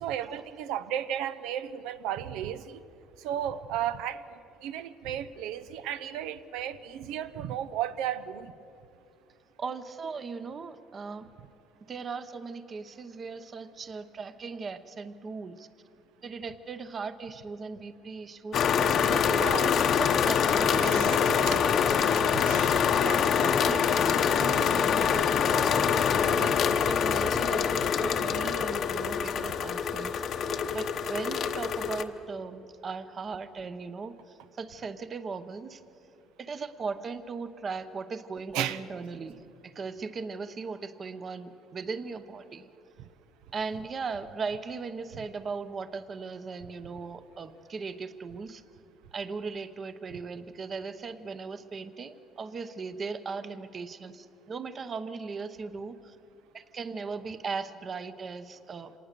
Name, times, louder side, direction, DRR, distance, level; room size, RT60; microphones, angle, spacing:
voice 1, 0.0-2.8 3.2-4.2 4.6-8.5 19.4-19.7 20.8-21.2 21.5-21.6 22.4-22.7 23.0-23.6 38.5-38.8, right 10 dB, 90° right, 12 dB, 0.7 m, -34 dB
voice 2, 9.6-11.3 11.9-15.7 16.2-19.4 20.0-22.8 23.6-26.6 26.9-30.5 30.7-35.8 36.4-42.7 43.5-48.6 49.1-56.2 56.5-59.0, right 4 dB, 30° right, 12 dB, 0.9 m, -38 dB
sound 1, 18.5-32.0, left 7 dB, 45° left, 0.9 m, -25 dB
26.0 x 19.0 x 6.8 m, 2.6 s
cardioid pair, 150°, 0 cm